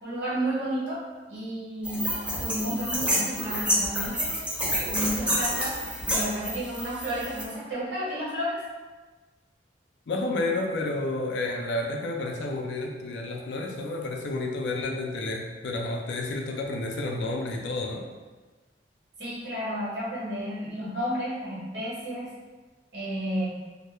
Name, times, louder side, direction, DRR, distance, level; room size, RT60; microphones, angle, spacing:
voice 1, 0.0-1.0 1.3-2.1 2.4-4.3 4.9-5.8 6.1-8.6 19.2-22.3 22.9-23.5, equal, 65° right, -8 dB, 1.0 m, -31 dB
sound 1, 1.8-7.4, equal, 5° right, 0.6 m, -29 dB
voice 2, 10.1-18.0, left 2 dB, 65° left, 0 dB, 0.4 m, -30 dB
2.2 x 2.1 x 2.9 m, 1.3 s
head